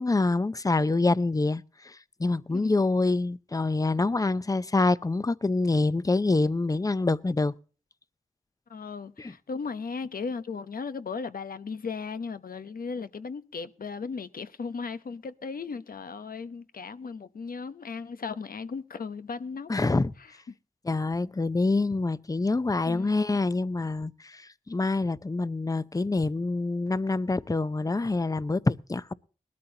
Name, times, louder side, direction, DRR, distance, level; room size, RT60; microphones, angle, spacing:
voice 1, 0.0-7.5 9.2-9.3 19.7-20.1 20.8-29.1, left 3 dB, 25° left, 0.6 m, -26 dB
voice 2, 8.7-19.7 20.5-20.6 22.9-23.2, left 5 dB, 85° left, 0.9 m, -36 dB
20.0 x 13.0 x 2.8 m
wide cardioid pair, 80°, 15 cm